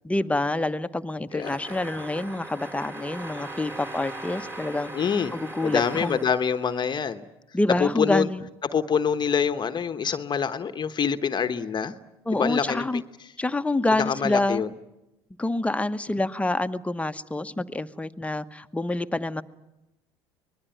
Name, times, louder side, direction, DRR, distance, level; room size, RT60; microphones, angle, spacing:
voice 1, 0.0-4.9 5.3-6.2 7.5-8.4 12.3-13.0 13.4-14.6 15.4-19.4, left 2 dB, 10° left, 10 dB, 1.1 m, -27 dB
voice 2, 1.3-1.6 4.9-5.3 5.6-7.2 7.8-8.3 8.6-12.0 12.3-13.0 13.9-14.7, left 7 dB, 35° left, 9 dB, 1.1 m, -26 dB
Pneumatic Drill Song, 1.4-7.1, right 1 dB, 20° right, 3.2 m, -39 dB
25.0 x 20.5 x 9.2 m, 0.97 s
hypercardioid pair, 70°, 13 cm